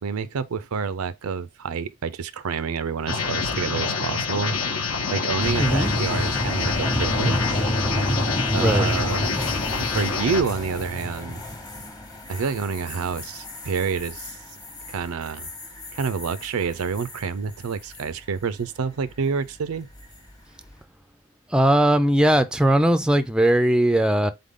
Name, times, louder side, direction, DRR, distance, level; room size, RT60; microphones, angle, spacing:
voice 1, 0.0-7.7 8.5-9.4 9.8-11.4 12.3-14.4 14.9-15.5 15.9-19.9, right 5 dB, 90° right, 0.5 m, -28 dB
sound 1, 3.1-10.4, left 5 dB, 75° left, 0.9 m, -27 dB
sound 2, 5.4-17.2 17.6-18.0 19.9-20.3, left 1 dB, 20° left, 0.9 m, -29 dB
voice 2, 5.6-5.9 8.5-8.9 21.5-24.3, right 1 dB, 5° right, 0.4 m, -19 dB
4.0 x 3.7 x 3.6 m
head